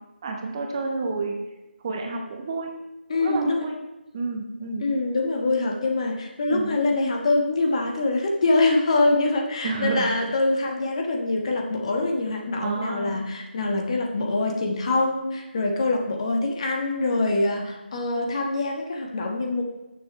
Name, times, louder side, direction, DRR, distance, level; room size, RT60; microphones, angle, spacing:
voice 1, 0.2-1.4 1.8-2.7 3.1-3.8 4.1-4.8 6.5-6.7 9.6-10.1 12.6-13.2 13.6-13.8, right 3 dB, 25° right, 2 dB, 0.9 m, -30 dB
voice 2, 3.1-3.6 4.8-19.6, left 2 dB, 35° left, 2 dB, 1.3 m, -24 dB
12.5 x 7.1 x 3.1 m, 1.0 s
figure-of-eight pair, 155°, 6 cm